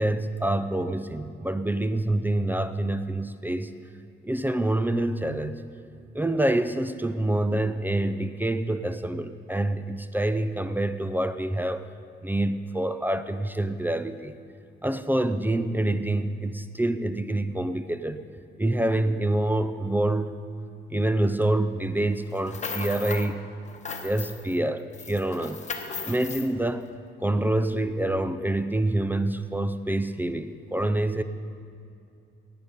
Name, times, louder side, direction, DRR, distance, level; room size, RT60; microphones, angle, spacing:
voice 1, 0.0-3.7 4.2-5.6 6.1-11.9 12.2-14.3 14.8-18.2 18.6-20.4 20.9-23.4 24.0-25.6 26.0-26.9 27.2-31.2, right 1 dB, 10° right, 11 dB, 0.5 m, -26 dB
sound 1, 22.3-23.3 23.6-24.6 24.9-26.5, left 5 dB, 35° left, 1.3 m, -36 dB
17.5 x 8.5 x 5.4 m, 2.5 s
cardioid pair, 90°, 20 cm